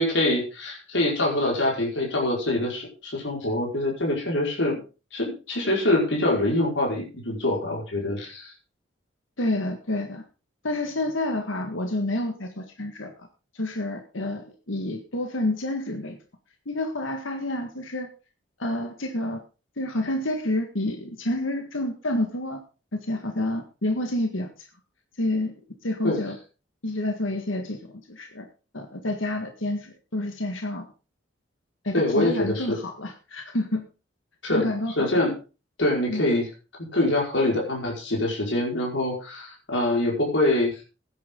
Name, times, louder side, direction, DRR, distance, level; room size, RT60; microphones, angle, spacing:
voice 1, 0.0-4.8 5.1-8.5 26.0-26.2 31.9-32.8 34.4-34.7 35.0-35.3 35.8-36.5 36.9-40.8, left 1 dB, 75° left, -1 dB, 5.2 m, -24 dB
voice 2, 9.4-10.2 10.6-13.1 13.5-16.2 16.6-18.1 18.6-19.4 19.8-22.6 22.9-24.7 25.2-25.5 25.8-26.3 26.8-27.8 28.1-28.4 28.7-30.9 31.8-33.8 34.5-35.1 36.1-36.2, left 1 dB, 90° left, 5 dB, 1.8 m, -29 dB
16.5 x 10.0 x 3.9 m, 0.33 s
head